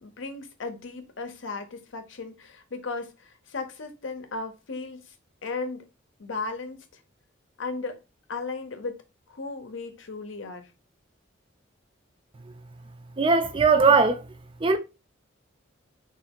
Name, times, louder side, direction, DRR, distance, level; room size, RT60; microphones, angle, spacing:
voice 1, 0.0-5.1 5.4-5.9 6.2-6.9 7.6-8.0 8.3-9.0 9.3-10.7, left 3 dB, 75° left, 0.6 m, -35 dB
voice 2, 13.2-14.3 14.6-14.8, right 4 dB, 25° right, 0.4 m, -19 dB
3.2 x 2.4 x 2.8 m
head